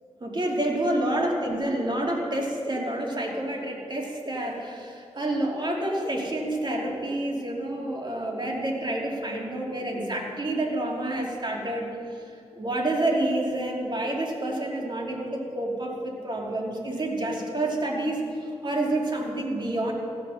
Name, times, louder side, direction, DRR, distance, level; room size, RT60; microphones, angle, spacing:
voice 1, 0.2-12.2 12.5-18.2 18.6-19.9, right 1 dB, 40° right, -1 dB, 2.7 m, -28 dB
16.0 x 6.9 x 6.4 m, 2.4 s
cardioid pair, 50°, 12 cm